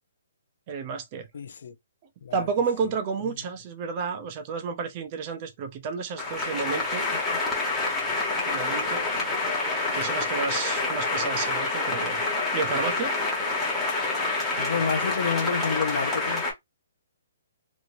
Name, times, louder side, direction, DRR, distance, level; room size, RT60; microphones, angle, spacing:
voice 1, 0.7-1.3 2.3-7.1 8.4-9.0 9.9-12.2 12.5-13.1, right 5 dB, 30° right, 0.5 m, -31 dB
voice 2, 1.3-1.8 2.2-2.4 3.2-3.3 14.6-16.5, left 6 dB, 65° left, 0.5 m, -29 dB
sound 1, 6.2-16.5, left 3 dB, 5° left, 1.0 m, -27 dB
3.1 x 2.7 x 2.6 m
hypercardioid pair, 165°, 0 cm